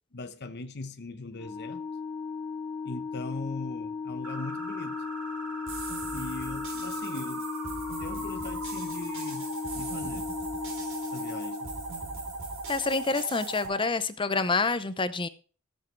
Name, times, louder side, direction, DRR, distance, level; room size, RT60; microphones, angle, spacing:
voice 1, 0.1-1.8 2.8-5.0 6.1-7.4 8.0-10.3 11.1-11.7, left 2 dB, 50° left, 1.1 m, -40 dB
Organ, 1.3-12.2, left 5 dB, 5° left, 1.3 m, -36 dB
sound 1, 4.2-13.9, right 2 dB, 75° right, 2.5 m, -40 dB
sound 2, 5.7-13.7, right 4 dB, 60° right, 4.4 m, -42 dB
voice 2, 12.7-15.3, left 3 dB, 25° left, 0.7 m, -27 dB
15.5 x 7.4 x 4.6 m
head